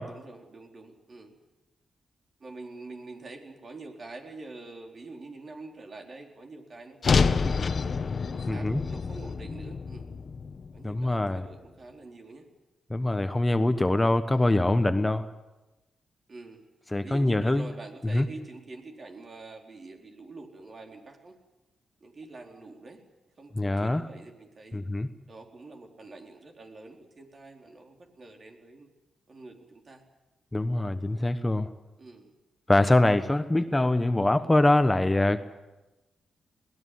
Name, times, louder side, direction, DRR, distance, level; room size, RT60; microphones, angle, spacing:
voice 1, 0.0-1.4 2.4-7.9 8.3-10.1 10.7-12.5 14.3-14.6 16.3-16.7 17.0-21.4 22.0-23.0 23.4-24.8 25.3-28.9 29.3-30.0 32.0-32.3, right 3 dB, 50° right, 3 dB, 4.2 m, -46 dB
sound 1, 7.0-11.3, left 5 dB, 55° left, 1.3 m, -28 dB
voice 2, 8.5-8.8 10.8-11.4 12.9-15.3 16.9-17.7 18.1-18.3 23.6-24.0 24.7-25.1 30.5-31.7 32.7-35.5, left 1 dB, 20° left, 11 dB, 1.2 m, -24 dB
21.5 x 18.0 x 9.6 m, 1.1 s
supercardioid pair, 55°, 0 cm